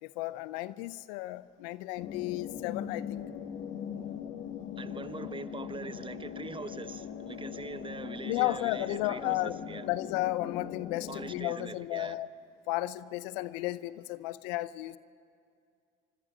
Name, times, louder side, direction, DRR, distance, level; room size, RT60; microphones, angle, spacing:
voice 1, 0.0-3.2 8.3-9.6 9.9-12.3 12.7-15.0, left 17 dB, 85° left, 17 dB, 0.6 m, -33 dB
sound 1, 2.0-11.4, left 8 dB, 70° left, 1.8 m, -40 dB
voice 2, 4.8-9.9 11.1-12.2, right 4 dB, 25° right, 12 dB, 1.0 m, -42 dB
25.0 x 25.0 x 5.0 m, 2.3 s
supercardioid pair, 70°, 21 cm